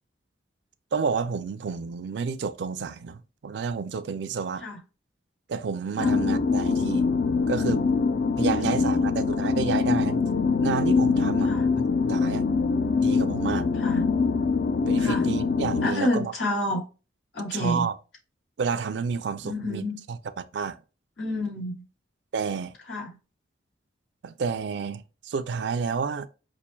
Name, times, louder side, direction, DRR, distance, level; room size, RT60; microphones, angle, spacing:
voice 1, 0.9-4.6 5.5-7.1 7.5-7.8 8.4-10.2 10.6-12.4 13.0-13.7 14.9-16.3 17.5-17.9 18.6-19.8 20.1-20.2 20.5-20.8 22.3-22.7 24.2-26.3, right 5 dB, 65° right, 0.4 m, -30 dB
sound 1, 6.0-15.9, left 4 dB, 55° left, 0.4 m, -24 dB
voice 2, 8.5-9.0 11.4-11.7 13.8-14.0 15.0-15.3 15.8-16.8 17.3-17.9 19.4-20.0 21.2-21.8 22.9-23.1, left 1 dB, 85° left, 2.2 m, -29 dB
5.6 x 2.5 x 2.2 m
head